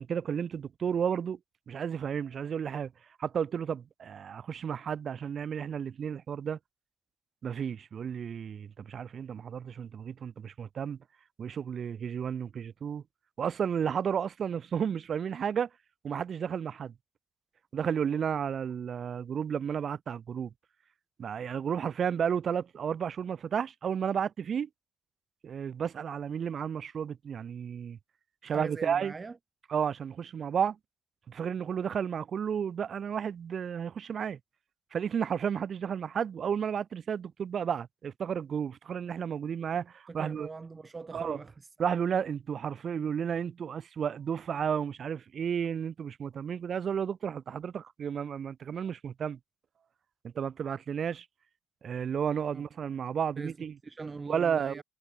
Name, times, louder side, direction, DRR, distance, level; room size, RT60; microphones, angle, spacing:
voice 1, 0.0-1.4 1.7-2.9 3.2-6.6 7.4-11.0 11.4-13.0 13.4-15.7 16.0-16.9 17.7-20.5 21.2-24.7 25.4-28.0 28.4-29.1 29.7-30.8 31.3-34.4 34.9-40.5 41.1-41.4 41.8-49.4 50.2-51.3 51.8-53.7 54.3-54.8, right 7 dB, 55° right, 3.5 m, -32 dB
voice 2, 28.5-29.4 40.1-41.7 52.5-52.6 53.4-53.6 53.8-54.8, right 4 dB, 30° right, 2.3 m, -41 dB
cardioid pair, 90°, 0 cm